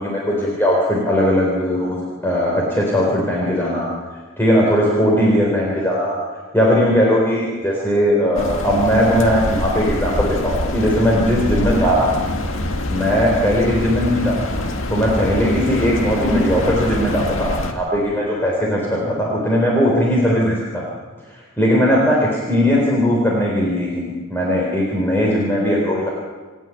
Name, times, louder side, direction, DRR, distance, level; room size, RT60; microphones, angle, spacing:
voice 1, 0.0-3.9 4.4-6.2 6.5-12.1 12.9-14.3 14.9-20.8 21.6-26.1, equal, 10° left, -4 dB, 4.3 m, -18 dB
sound 1, 8.3-17.7, left 1 dB, 75° left, 2.0 m, -24 dB
29.5 x 10.0 x 9.3 m, 1.4 s
head